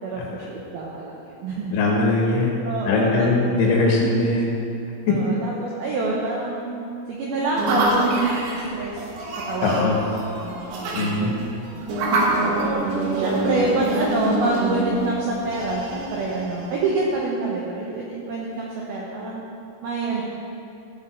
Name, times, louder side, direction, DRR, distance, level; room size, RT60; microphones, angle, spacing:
voice 1, 0.0-1.7 2.6-3.3 3.9-4.1 5.1-6.7 7.1-9.0 9.5-10.0 10.3-11.3 11.7-19.4 19.8-20.2, right 3 dB, 85° right, -4 dB, 2.1 m, -27 dB
voice 2, 1.7-4.6 5.1-5.2 9.6-10.0 10.9-11.4, left 2 dB, 75° left, -2 dB, 3.6 m, -21 dB
sound 1, 7.6-17.2, right 1 dB, 70° right, 3.1 m, -26 dB
15.5 x 5.3 x 4.4 m, 2.6 s
omnidirectional pair, 5.7 m